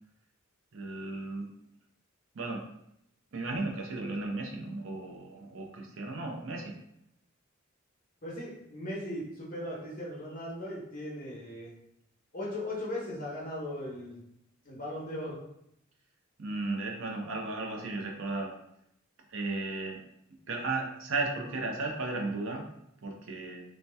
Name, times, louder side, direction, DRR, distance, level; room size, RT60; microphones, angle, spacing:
voice 1, 0.7-1.5 2.3-2.6 3.3-6.7 16.4-18.5 19.3-20.0 20.5-22.6 23.0-23.6, right 3 dB, 65° right, 1 dB, 0.6 m, -35 dB
voice 2, 8.2-11.7 12.3-14.2 14.6-15.4, left 1 dB, 40° left, -6 dB, 0.8 m, -38 dB
2.7 x 2.1 x 3.3 m, 0.78 s
head